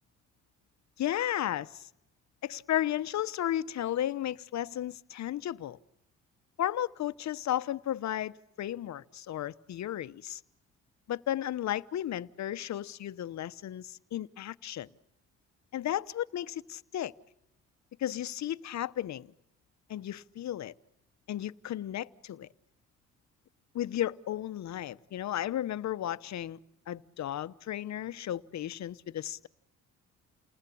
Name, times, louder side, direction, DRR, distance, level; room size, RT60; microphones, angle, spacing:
voice 1, 1.0-1.9 2.4-5.8 6.6-10.4 11.1-14.9 15.7-17.1 18.0-19.3 19.9-20.7 21.3-22.5 23.7-26.6 26.9-29.5, left 12 dB, 65° left, 1.1 m, -34 dB
30.0 x 20.0 x 8.5 m
cardioid pair, 90°, 30 cm